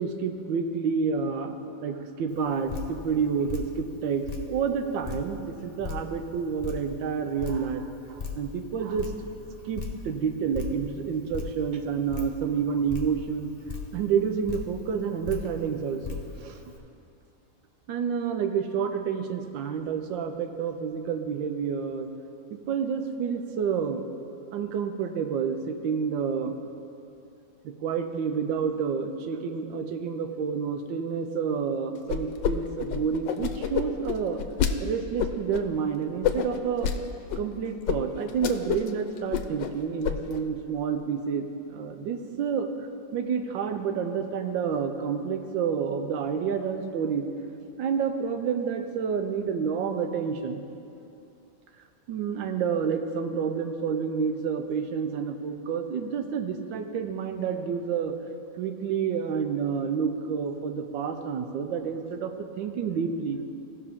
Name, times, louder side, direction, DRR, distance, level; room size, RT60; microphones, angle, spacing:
voice 1, 0.0-9.1 9.6-13.5 13.9-16.6 17.9-22.1 22.5-24.0 24.5-26.6 27.6-34.4 34.8-36.9 37.4-47.3 47.8-50.6 52.1-58.1 58.6-63.4, right 6 dB, 85° right, 7 dB, 1.4 m, -29 dB
Drip, 2.3-16.8, left 6 dB, 35° left, 0.6 m, -40 dB
sound 1, 32.1-32.5 32.8-34.7 35.2-35.6 36.2-37.0 37.3-37.4 37.9-38.0 38.3-38.9 39.2-39.7 40.0-40.4, left 9 dB, 80° left, 1.3 m, -27 dB
17.0 x 6.0 x 3.6 m, 2.7 s
omnidirectional pair, 2.0 m